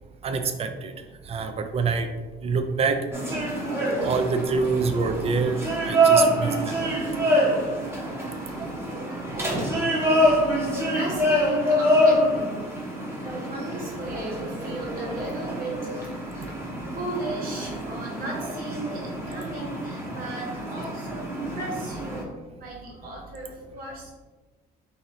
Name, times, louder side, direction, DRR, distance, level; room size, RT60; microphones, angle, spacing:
voice 1, 0.2-0.9 1.3-2.1 2.4-3.0 4.0-5.6 5.8-6.7, right 4 dB, 35° right, 7 dB, 0.4 m, -25 dB
sound 1, 3.1-22.2, equal, 15° right, 0.9 m, -26 dB
voice 2, 9.3-10.1 10.6-12.7 13.1-16.2 16.9-22.3 22.6-24.1, right 2 dB, 60° right, -3 dB, 1.4 m, -35 dB
2.8 x 2.6 x 4.2 m, 1.2 s
cardioid pair, 110°, 17 cm